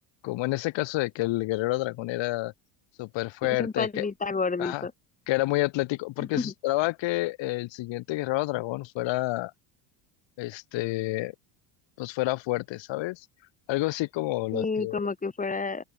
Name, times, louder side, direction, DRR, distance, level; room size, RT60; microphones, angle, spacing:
voice 1, 0.2-2.5 3.0-4.1 4.6-4.9 5.3-9.5 10.4-11.3 12.0-13.3 13.7-15.0, left 19 dB, 60° left, 5.9 m, -29 dB
voice 2, 3.4-4.9 6.2-6.5 14.5-15.8, left 4 dB, 15° left, 6.3 m, -30 dB
open air
cardioid pair, 145°, 49 cm